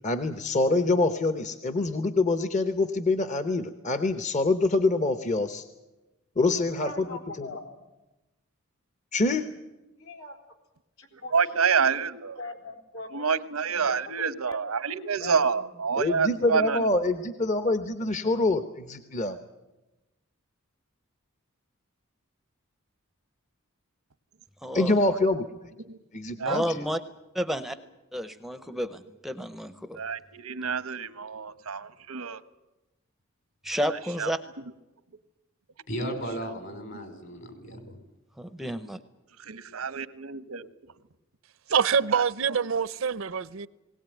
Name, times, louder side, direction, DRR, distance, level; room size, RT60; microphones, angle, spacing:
voice 1, 0.0-5.6 6.4-7.1 7.4-7.5 9.1-9.5 16.0-19.4 24.7-25.7 26.1-26.7, left 2 dB, 35° left, 0.9 m, -25 dB
voice 2, 6.6-7.8 10.0-10.4 11.0-11.3 12.4-13.2 13.7-14.0 14.5-14.7 15.2-15.7 15.9-16.6, left 2 dB, 80° left, 4.0 m, -42 dB
voice 3, 11.1-12.4 13.1-16.8 25.0-25.2 25.9-26.0 26.4-26.6 30.0-32.4 34.2-34.3 37.4-37.8 39.4-40.7 42.1-42.2, right 6 dB, 90° right, 1.0 m, -28 dB
voice 4, 24.6-25.0 26.4-27.0 27.3-27.8 28.1-30.0 33.6-34.4 38.4-39.0, equal, ahead, 0.6 m, -31 dB
voice 5, 35.9-38.0, equal, 60° left, 4.4 m, -35 dB
voice 6, 41.7-43.7, right 6 dB, 65° right, 0.7 m, -25 dB
20.0 x 18.0 x 9.2 m
head